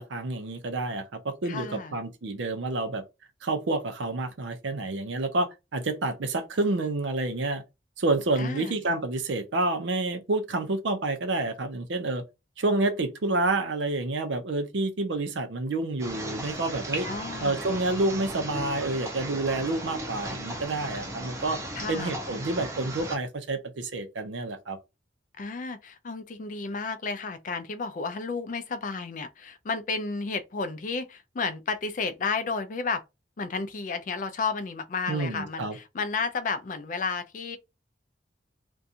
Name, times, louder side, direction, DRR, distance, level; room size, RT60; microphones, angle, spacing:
voice 1, 0.0-3.0 3.4-7.6 8.0-12.2 12.6-17.1 17.4-21.6 21.9-24.8 35.1-35.8, right 2 dB, 90° right, 0.6 m, -29 dB
voice 2, 1.5-2.0 8.4-8.8 17.1-17.6 21.7-22.1 25.4-33.0 33.4-37.6, left 4 dB, 45° left, 0.4 m, -32 dB
sound 1, 16.0-23.2, right 1 dB, 15° right, 0.5 m, -36 dB
2.5 x 2.3 x 2.7 m
head